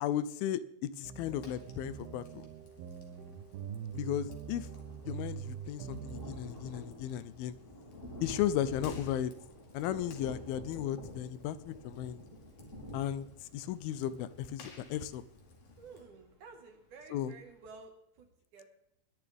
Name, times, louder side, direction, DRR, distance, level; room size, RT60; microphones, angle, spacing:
voice 1, 0.0-2.5 3.9-4.7 5.1-7.5 8.2-9.3 9.7-12.2 12.9-15.2 17.1-17.3, left 11 dB, 80° left, 15 dB, 2.5 m, -35 dB
sound 1, 1.0-6.4, right 8 dB, 90° right, 3.0 m, -44 dB
Fire, 1.1-16.0, left 4 dB, 65° left, 3.8 m, -59 dB
Thunder, 3.6-3.7 3.9-16.5 17.0-17.1 17.4-17.5, equal, 20° left, 2.9 m, -49 dB
voice 2, 15.8-18.7, right 4 dB, 60° right, 4 dB, 3.0 m, -53 dB
21.0 x 10.5 x 3.5 m, 0.77 s
omnidirectional pair, 4.3 m